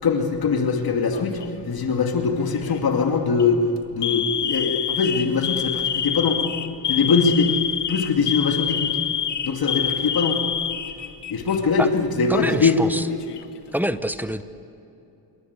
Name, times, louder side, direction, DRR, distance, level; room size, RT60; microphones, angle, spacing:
voice 1, 0.0-3.6 3.9-6.6 6.9-7.5 7.9-9.0 9.4-10.5 11.3-13.0, left 5 dB, 60° left, 3 dB, 2.5 m, -22 dB
Alarm, 1.1-1.6 2.5-2.8 3.3-3.4 4.0-11.6 11.9-12.0 12.9-13.6, left 9 dB, 85° left, 1.5 m, -27 dB
voice 2, 12.3-13.1 13.7-14.4, equal, 5° right, 11 dB, 1.0 m, -25 dB
27.5 x 22.5 x 8.3 m, 2.8 s
cardioid pair, 100°, 40 cm